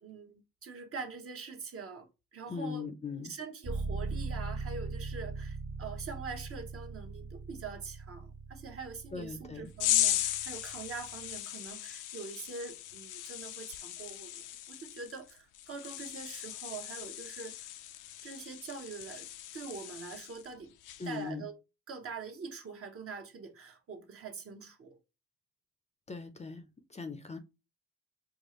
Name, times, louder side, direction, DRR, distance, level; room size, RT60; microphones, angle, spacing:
voice 1, 0.0-2.9 3.2-17.7 18.2-19.3 19.5-20.7 21.0-21.6 21.9-25.0, right 4 dB, 50° right, 1.0 m, -44 dB
voice 2, 2.5-3.3 9.1-9.7 21.0-21.5 26.1-26.6 26.9-27.4, left 4 dB, 20° left, 0.5 m, -39 dB
sound 1, 3.6-11.4, right 3 dB, 25° right, 0.6 m, -40 dB
sound 2, 9.8-20.5 20.8-21.2, left 13 dB, 85° left, 0.5 m, -37 dB
4.5 x 2.4 x 2.9 m
cardioid pair, 90°, 30 cm